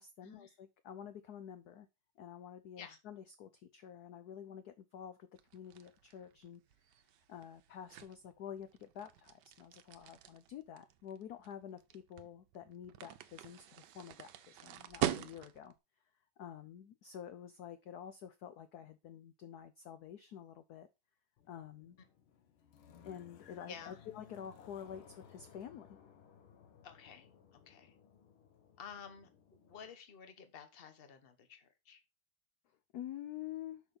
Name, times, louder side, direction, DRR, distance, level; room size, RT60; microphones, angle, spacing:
voice 1, 0.0-1.9 2.2-6.6 7.3-15.7 16.4-20.9 21.5-22.0 23.0-25.9 32.9-33.8, left 9 dB, 65° left, 1.0 m, -49 dB
sound 1, 5.4-15.8, right 12 dB, 70° right, 1.2 m, -44 dB
sound 2, 21.4-29.9, left 7 dB, 85° left, 1.8 m, -61 dB
voice 2, 23.7-24.0 26.8-27.3 27.5-27.9 28.8-29.3 29.6-32.0, left 7 dB, 35° left, 1.0 m, -52 dB
6.2 x 5.3 x 5.2 m
omnidirectional pair, 2.2 m